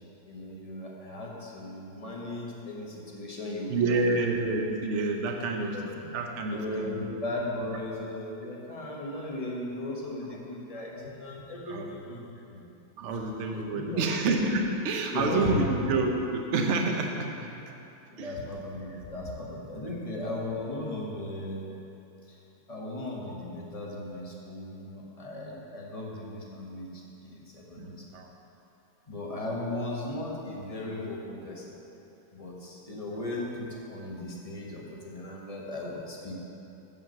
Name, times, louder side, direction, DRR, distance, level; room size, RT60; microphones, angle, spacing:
voice 1, 0.3-4.1 5.4-5.9 6.4-12.6 13.5-14.1 15.1-15.8 18.1-21.7 22.3-22.4 22.7-28.0 29.1-31.7 32.3-36.3, left 1 dB, 25° left, -3 dB, 0.8 m, -37 dB
voice 2, 3.7-5.8 6.1-7.1 11.7-11.8 13.0-17.5 18.2-18.3 19.8-19.9 27.8-28.3, right 3 dB, 60° right, 2 dB, 0.7 m, -28 dB
7.4 x 5.6 x 7.5 m, 3.0 s
omnidirectional pair, 2.2 m